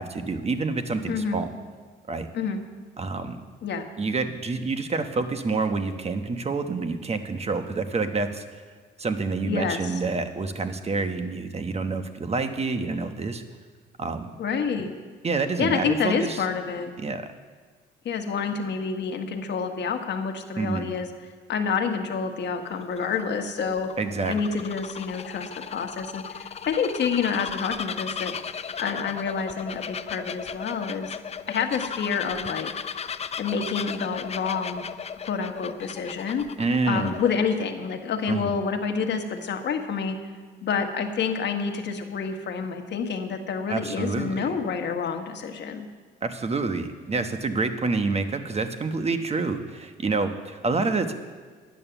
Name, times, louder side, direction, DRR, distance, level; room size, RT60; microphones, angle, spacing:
voice 1, 0.0-1.5 2.1-2.3 3.0-3.4 4.0-8.6 9.0-13.4 14.0-14.3 15.2-16.4 17.0-17.3 20.6-20.9 24.0-24.3 36.6-37.1 38.3-38.5 43.7-44.5 46.2-51.1, right 3 dB, 30° right, 8 dB, 1.1 m, -27 dB
voice 2, 1.1-1.4 2.3-2.6 3.6-3.9 9.4-9.9 14.4-14.9 15.6-16.9 18.0-21.1 21.5-23.9 24.3-28.4 28.8-31.2 31.5-32.7 33.4-34.9 35.3-36.5 36.9-40.2 40.6-45.9, left 6 dB, 60° left, 5 dB, 1.3 m, -28 dB
Bird vocalization bird call bird song, 22.5-37.5, left 6 dB, 30° left, 0.4 m, -36 dB
10.5 x 9.2 x 7.0 m, 1.5 s
cardioid pair, 90°, 20 cm